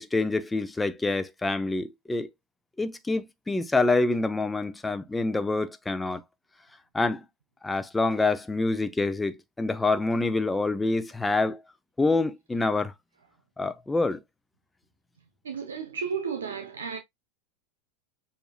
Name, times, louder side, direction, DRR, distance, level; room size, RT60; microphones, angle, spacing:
voice 1, 0.0-2.3 2.8-6.2 6.9-7.2 7.6-11.6 12.0-12.9 13.6-14.2, left 3 dB, 10° left, 0.7 m, -26 dB
voice 2, 15.4-17.0, right 6 dB, 85° right, 0.9 m, -33 dB
6.8 x 2.8 x 2.3 m
hypercardioid pair, 100°, 0 cm